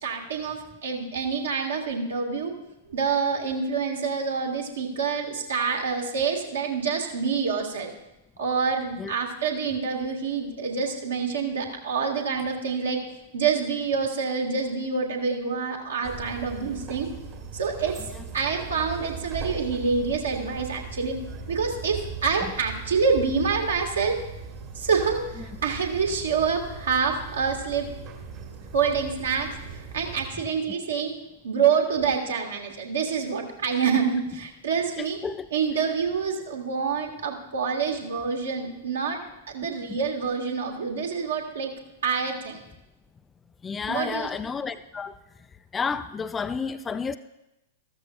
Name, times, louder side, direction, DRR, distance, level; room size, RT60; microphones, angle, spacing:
voice 1, 0.0-2.5 2.9-7.9 8.4-13.0 13.3-17.1 17.5-17.9 18.3-21.2 21.5-24.2 24.7-27.9 28.7-31.1 31.4-35.2 35.5-39.2 39.5-41.7 42.0-42.6 43.9-44.3, right 5 dB, 65° right, 1.7 m, -27 dB
sound 1, 16.0-30.3, right 5 dB, 35° right, 1.4 m, -39 dB
voice 2, 35.0-35.5 39.6-40.0 43.6-45.2 45.7-47.2, left 5 dB, 15° left, 0.3 m, -31 dB
14.0 x 13.5 x 2.4 m
figure-of-eight pair, 100°, 0 cm